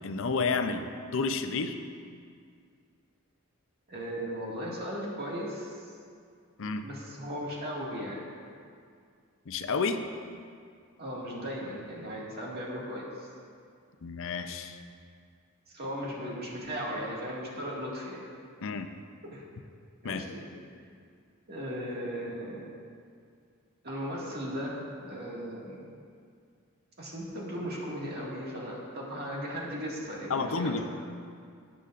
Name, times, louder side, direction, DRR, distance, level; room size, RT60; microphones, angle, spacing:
voice 1, 0.0-1.8 6.6-6.8 9.5-10.1 14.0-14.8 18.6-18.9 20.0-20.3 30.3-30.9, left 4 dB, 65° left, 8 dB, 0.6 m, -30 dB
voice 2, 3.9-5.9 6.8-8.2 11.0-13.3 15.7-18.2 19.3-19.4 20.0-20.4 21.5-22.6 23.8-25.8 27.0-30.9, equal, 50° right, -4 dB, 1.9 m, -37 dB
17.0 x 7.0 x 2.5 m, 2.2 s
head